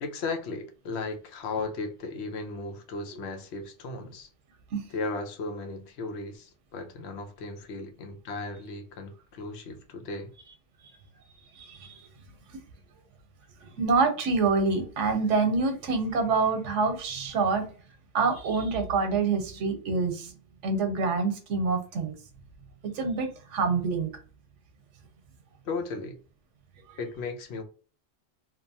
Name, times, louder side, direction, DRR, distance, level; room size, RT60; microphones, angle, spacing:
voice 1, 0.0-4.3 4.9-10.3 25.6-26.2 27.0-27.6, left 3 dB, 70° left, 0.8 m, -36 dB
voice 2, 11.6-12.0 13.8-17.6 18.1-20.3 20.6-22.1 22.9-24.1, right 4 dB, 85° right, 1.0 m, -26 dB
2.8 x 2.0 x 2.6 m
omnidirectional pair, 1.2 m